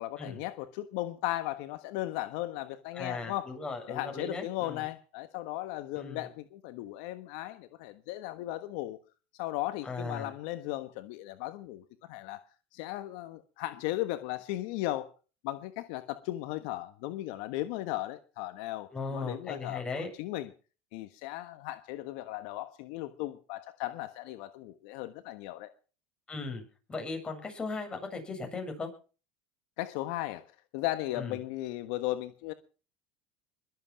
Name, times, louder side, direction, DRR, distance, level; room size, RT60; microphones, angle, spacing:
voice 1, 0.0-3.5 3.9-9.0 9.3-12.4 12.7-15.1 15.4-20.5 20.9-25.7 29.8-30.4 30.7-32.5, left 16 dB, 70° left, 11 dB, 1.3 m, -36 dB
voice 2, 2.9-4.8 5.9-6.2 9.8-10.3 18.9-20.1 26.3-26.6 26.9-28.9 31.2-31.4, left 3 dB, 20° left, 3 dB, 7.9 m, -37 dB
22.0 x 8.2 x 6.0 m, 0.37 s
supercardioid pair, 110°, 5 cm